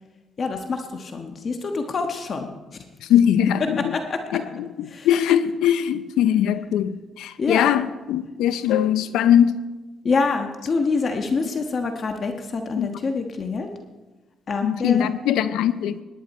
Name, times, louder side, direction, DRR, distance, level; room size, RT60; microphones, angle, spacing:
voice 1, 0.4-2.5 3.6-4.4 4.9-5.2 7.4-7.7 10.0-13.7 14.5-15.1, left 4 dB, 45° left, 5 dB, 1.3 m, -26 dB
voice 2, 3.1-3.9 4.3-4.4 5.0-9.6 12.8-12.9 14.6-16.0, left 10 dB, 90° left, 13 dB, 0.6 m, -20 dB
20.0 x 10.0 x 4.3 m, 1.2 s
cardioid pair, 90°, 0 cm